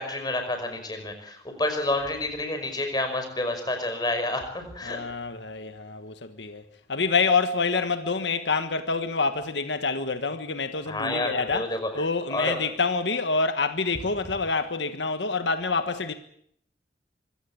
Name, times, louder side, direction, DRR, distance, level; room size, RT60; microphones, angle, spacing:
voice 1, 0.0-5.0 10.9-11.9 12.3-12.6, left 2 dB, 25° left, 5.4 m, -29 dB
voice 2, 4.8-6.6 6.9-11.6 11.9-16.1, left 4 dB, 85° left, 1.5 m, -27 dB
25.0 x 16.5 x 8.6 m
head